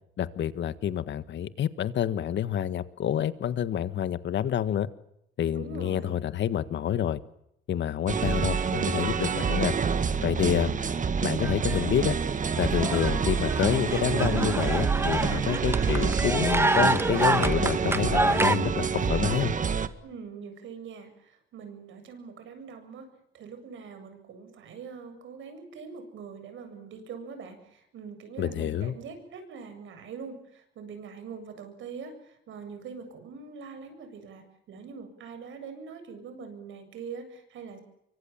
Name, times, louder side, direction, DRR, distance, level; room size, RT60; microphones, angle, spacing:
voice 1, 0.2-4.9 5.4-7.2 7.7-9.7 10.2-10.7 11.2-12.1 12.6-19.5 28.4-28.9, left 10 dB, 65° left, 13 dB, 1.7 m, -28 dB
voice 2, 5.5-6.2 10.3-10.9 20.0-23.1 23.3-37.8, right 5 dB, 75° right, 8 dB, 7.7 m, -43 dB
sound 1, 8.1-19.9, right 6 dB, 40° right, 1.9 m, -27 dB
sound 2, 11.4-12.2 12.4-18.6, right 2 dB, 10° right, 1.3 m, -28 dB
25.5 x 24.0 x 7.4 m, 0.78 s
cardioid pair, 90°, 20 cm